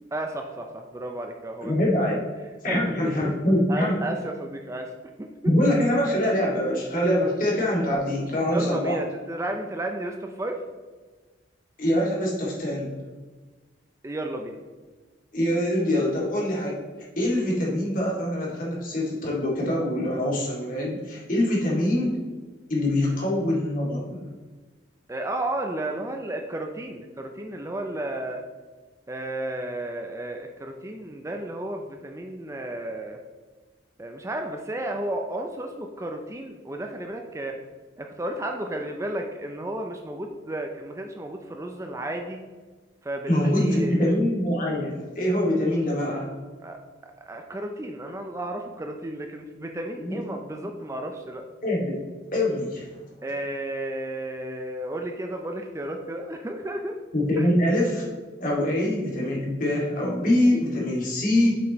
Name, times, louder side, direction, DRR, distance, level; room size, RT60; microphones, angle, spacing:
voice 1, 0.1-1.8 2.7-3.3 3.7-4.9 5.2-5.3 8.5-10.6 14.0-14.6 23.0-23.2 25.1-28.4 29.1-33.2 34.0-37.6 38.0-42.4 43.0-44.1 46.6-46.8 47.3-51.4 53.2-57.0 57.4-57.5, right 1 dB, 15° right, 3 dB, 0.4 m, -33 dB
voice 2, 1.6-2.2 2.6-4.0 5.4-9.0 11.8-13.0 15.3-16.8 17.2-22.2 22.7-24.2 43.3-46.3 50.0-50.2 51.6-52.0 52.3-52.9 57.1-58.1 58.4-61.6, left 1 dB, 45° left, -4 dB, 2.2 m, -24 dB
7.4 x 6.0 x 3.0 m, 1.3 s
head